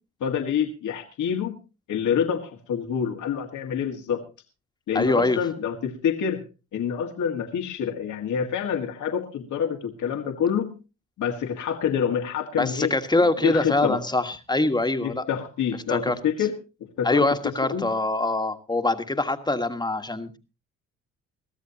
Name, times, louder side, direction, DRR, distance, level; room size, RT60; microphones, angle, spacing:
voice 1, 0.2-1.6 1.9-4.2 4.9-6.4 6.7-10.7 11.2-12.9 13.4-14.0 15.0-16.5 17.0-17.3 17.7-17.9, left 8 dB, 75° left, 3 dB, 1.8 m, -27 dB
voice 2, 4.9-5.4 12.6-15.2 15.9-16.1 17.0-20.4, left 2 dB, 15° left, 7 dB, 1.5 m, -24 dB
22.0 x 14.0 x 2.9 m, 0.30 s
cardioid pair, 90°, 30 cm